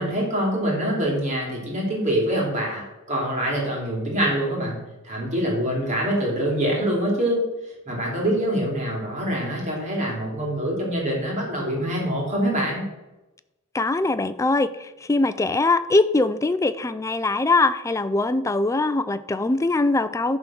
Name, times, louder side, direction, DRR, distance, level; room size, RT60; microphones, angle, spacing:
voice 1, 0.0-2.8 3.1-4.8 5.1-7.4 7.9-12.8, equal, 35° right, -2 dB, 2.6 m, -25 dB
voice 2, 13.7-20.4, left 2 dB, 15° left, 12 dB, 0.3 m, -22 dB
11.0 x 3.8 x 6.0 m, 1.0 s
head